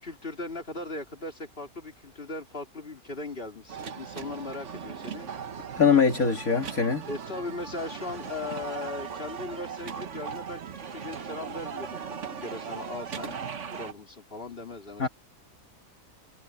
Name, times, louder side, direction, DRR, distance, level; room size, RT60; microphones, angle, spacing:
voice 1, 0.0-5.3 7.1-13.4 13.7-15.1, left 3 dB, 35° left, 3.6 m, -38 dB
sound 1, 3.7-13.9, right 7 dB, 50° right, 1.4 m, -38 dB
voice 2, 5.8-7.0 15.0-15.1, left 6 dB, 60° left, 2.5 m, -22 dB
omnidirectional pair, 1.7 m